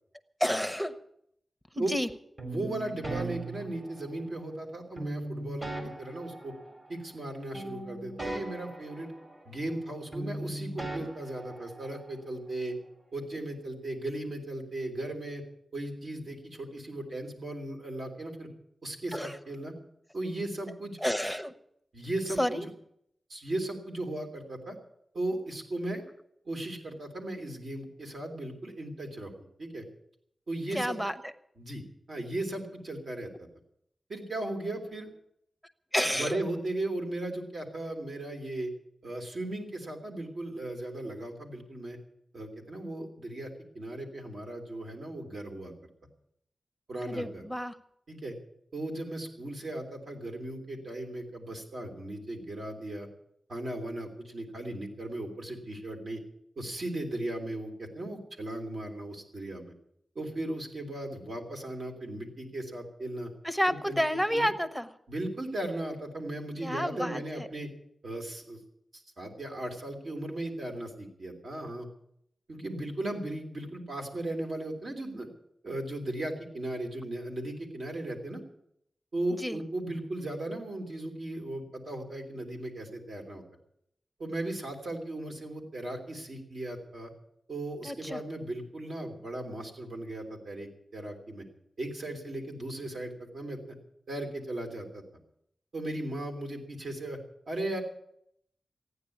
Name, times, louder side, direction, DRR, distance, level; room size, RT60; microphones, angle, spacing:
voice 1, 0.4-1.0 1.7-2.1 19.1-19.4 21.0-21.5 22.4-22.6 30.7-31.1 35.9-36.4 47.0-47.8 63.4-64.9 66.6-67.5 79.4-79.6 87.8-88.2, equal, 5° right, 10 dB, 0.9 m, -30 dB
sound 1, 2.4-4.4 5.0-7.3 7.5-9.9 10.1-12.2, right 1 dB, 35° right, 3.3 m, -39 dB
voice 2, 2.5-6.5 6.9-9.1 9.4-12.7 13.1-15.4 15.7-18.5 18.8-19.7 20.1-21.0 21.9-22.7 23.3-24.8 25.1-26.0 26.4-29.8 30.5-31.0 31.6-31.8 32.1-33.3 34.1-35.1 36.1-38.7 39.0-42.0 42.3-45.7 46.9-47.4 48.1-48.3 48.7-53.1 53.5-56.2 56.6-59.7 60.1-63.3 63.7-64.0 64.3-64.5 65.1-67.7 68.0-68.6 68.9-71.9 72.5-75.3 75.6-78.4 79.1-83.4 84.2-87.1 87.5-91.4 91.8-93.8 94.1-95.0 95.7-97.2 97.5-97.8, right 1 dB, 65° right, 2 dB, 3.2 m, -37 dB
14.5 x 9.8 x 8.4 m, 0.73 s
wide cardioid pair, 145°, 0 cm